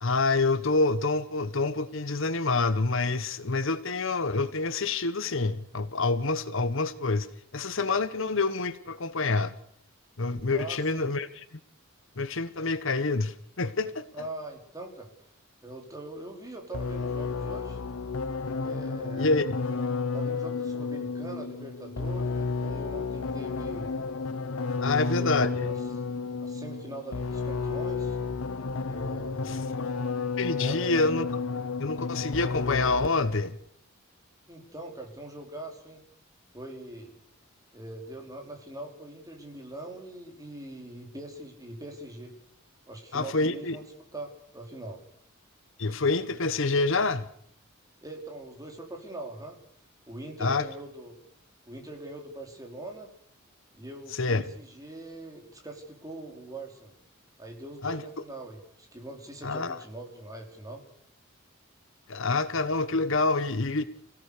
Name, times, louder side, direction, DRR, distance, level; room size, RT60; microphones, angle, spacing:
voice 1, 0.0-7.3 7.5-9.5 10.2-11.4 12.2-14.3 19.2-19.5 24.8-25.5 30.0-30.1 30.4-31.3 31.8-33.5 43.1-43.8 45.8-47.3 50.4-50.7 54.1-54.4 57.8-58.0 59.4-59.8 62.1-63.8, left 3 dB, 65° left, 1.2 m, -27 dB
voice 2, 10.5-11.1 14.1-15.1 15.6-17.8 18.6-19.4 20.1-24.0 24.7-25.8 26.4-28.2 28.9-29.7 30.5-31.2 34.5-36.0 36.5-37.2 37.7-42.3 42.9-43.9 44.1-45.0 48.0-49.6 50.1-51.2 51.7-53.1 53.7-56.9 57.4-60.8, right 2 dB, 15° right, 4.6 m, -42 dB
sound 1, 16.7-33.4, left 4 dB, 80° left, 0.9 m, -32 dB
29.5 x 17.0 x 6.8 m
head